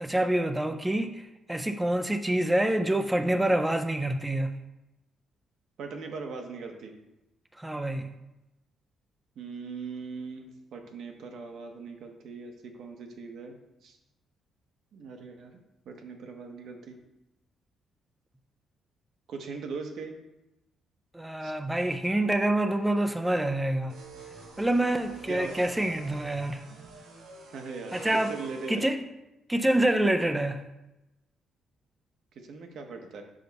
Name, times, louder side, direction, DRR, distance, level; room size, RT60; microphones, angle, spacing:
voice 1, 0.0-4.6 7.6-8.1 21.1-24.0 24.6-26.6 27.9-28.3 28.7-29.0 29.5-30.6, right 1 dB, 10° right, 0.5 m, -26 dB
voice 2, 5.8-6.9 9.4-13.5 13.8-14.0 14.9-15.6 15.9-17.0 19.3-20.2 21.4-21.5 25.3-25.5 27.5-28.9 32.4-33.2, right 4 dB, 70° right, 0.9 m, -40 dB
sound 1, 23.9-28.9, right 3 dB, 90° right, 1.2 m, -46 dB
5.6 x 5.1 x 4.0 m
cardioid pair, 90°, 0 cm